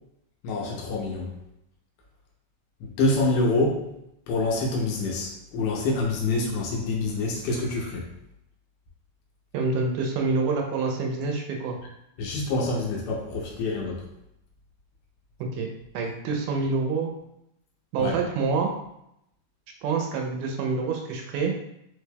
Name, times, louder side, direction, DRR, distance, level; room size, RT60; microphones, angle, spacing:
voice 1, 0.4-1.3 3.0-3.8 4.3-8.0 12.2-14.0 18.0-18.1, left 2 dB, 90° left, -1 dB, 2.3 m, -26 dB
voice 2, 9.5-11.8 15.4-15.7 15.9-17.1 17.9-18.7 19.8-21.5, right 4 dB, 90° right, 2 dB, 2.2 m, -27 dB
5.3 x 2.2 x 3.3 m, 0.79 s
omnidirectional pair, 3.6 m